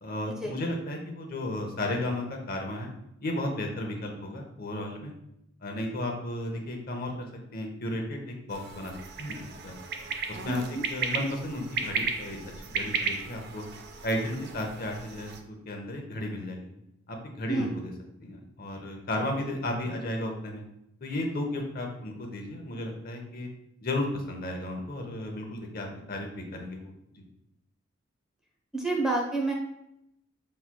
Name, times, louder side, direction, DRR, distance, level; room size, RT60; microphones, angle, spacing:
voice 1, 0.0-2.9 3.2-5.1 5.6-9.8 10.3-10.6 10.9-12.4 12.7-13.6 14.0-16.7 17.1-17.9 18.2-20.6 21.0-23.5 23.8-27.2, left 1 dB, 50° left, 2 dB, 0.7 m, -34 dB
sound 1, 8.5-15.4, right 5 dB, 55° right, 0.5 m, -35 dB
voice 2, 10.5-10.8 17.5-17.7 28.7-29.5, right 2 dB, 5° right, -1 dB, 0.5 m, -29 dB
5.8 x 3.1 x 2.2 m, 0.81 s
head